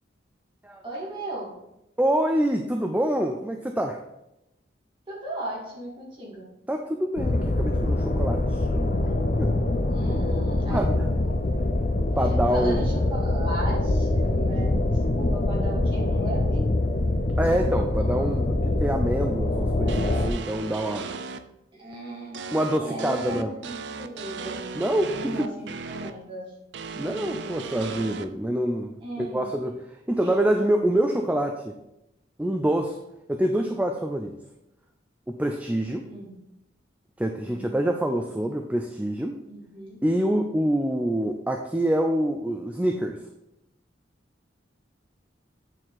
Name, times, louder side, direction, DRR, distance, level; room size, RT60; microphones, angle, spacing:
voice 1, 0.8-1.5 5.1-6.5 9.9-11.6 12.5-16.6 21.7-24.6 25.1-26.5 27.1-27.7 28.4-29.5 36.1-36.3 37.4-37.8 39.5-40.0, right 1 dB, 25° right, -5 dB, 2.3 m, -37 dB
voice 2, 2.0-4.0 6.7-9.0 9.4-9.6 10.7-11.1 12.2-12.8 17.4-21.1 22.5-23.5 24.7-25.5 27.0-28.9 29.2-31.8 32.4-33.0 33.3-34.3 35.3-36.1 37.2-39.4 40.0-43.2, right 1 dB, 10° right, 4 dB, 0.4 m, -26 dB
sound 1, 7.2-20.3, left 2 dB, 45° left, 0.6 m, -24 dB
sound 2, 19.9-21.4 22.3-26.1 26.7-28.2, right 5 dB, 65° right, 0.5 m, -36 dB
8.9 x 4.4 x 4.0 m, 0.88 s
head